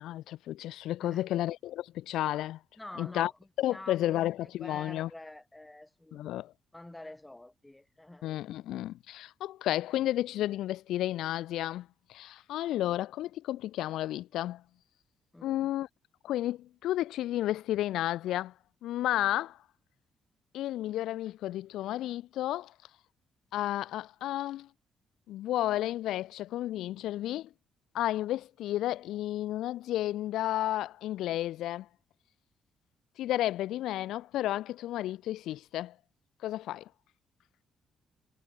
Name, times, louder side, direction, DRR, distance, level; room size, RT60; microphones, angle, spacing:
voice 1, 0.0-2.6 3.0-3.3 3.6-5.1 6.1-6.5 8.2-14.6 15.4-15.9 16.2-18.5 18.8-19.6 20.5-22.7 23.5-24.7 25.3-27.5 27.9-31.9 33.2-35.9 36.4-36.9, left 14 dB, 85° left, 0.7 m, -32 dB
voice 2, 2.8-3.3 3.7-6.4 6.7-8.3 15.3-15.7, left 1 dB, 10° left, 1.7 m, -47 dB
cardioid pair, 90°, 0 cm